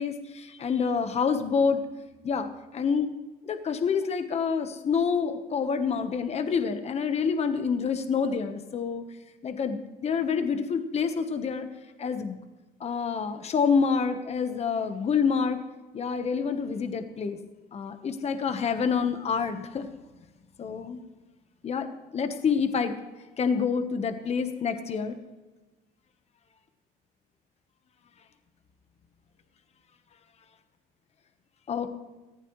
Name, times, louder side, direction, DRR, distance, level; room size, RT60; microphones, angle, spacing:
voice 1, 0.0-1.8 2.2-3.1 3.4-9.0 9.4-11.7 12.0-12.4 12.8-15.6 15.9-17.4 17.7-19.9 20.6-21.0 21.6-21.9 22.1-23.0 23.4-25.2 31.7-31.9, left 6 dB, 40° left, 8 dB, 1.2 m, -27 dB
20.5 x 15.0 x 3.2 m, 1.1 s
cardioid pair, 110°, 17 cm